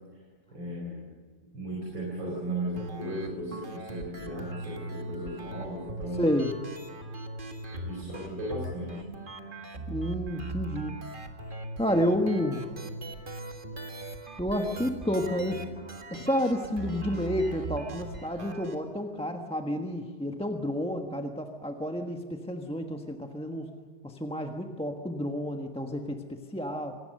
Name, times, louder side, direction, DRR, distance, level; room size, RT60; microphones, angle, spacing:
voice 1, 0.5-1.0 1.5-6.3 7.7-9.0, right 1 dB, 90° right, -3 dB, 5.4 m, -36 dB
sound 1, 2.8-18.7, right 2 dB, 30° right, 1.8 m, -40 dB
voice 2, 6.2-6.5 9.9-11.0 11.8-12.7 14.4-15.6 16.1-23.7 24.0-26.9, equal, 5° left, 3 dB, 1.0 m, -30 dB
26.5 x 18.5 x 6.6 m, 1.5 s
omnidirectional pair, 2.0 m